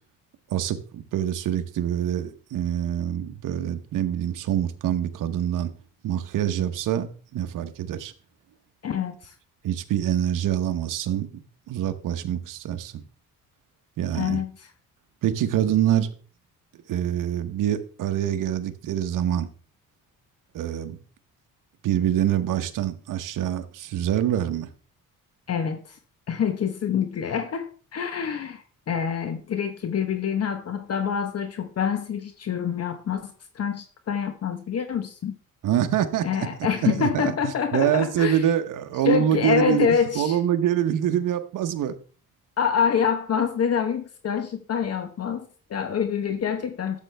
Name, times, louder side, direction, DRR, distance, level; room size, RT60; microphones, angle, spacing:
voice 1, 0.5-5.7 6.0-7.1 7.3-8.1 9.6-11.3 11.7-12.9 14.0-14.4 15.2-16.1 16.9-19.5 20.5-21.0 21.8-24.7 35.6-36.3 36.8-41.9, right 10 dB, 70° right, 1.0 m, -25 dB
voice 2, 8.8-9.3 14.1-14.7 25.5-26.0 26.3-35.4 36.2-38.4 39.0-40.4 42.6-47.0, left 7 dB, 50° left, 1.1 m, -26 dB
12.0 x 7.5 x 3.4 m
cardioid pair, 105°, 33 cm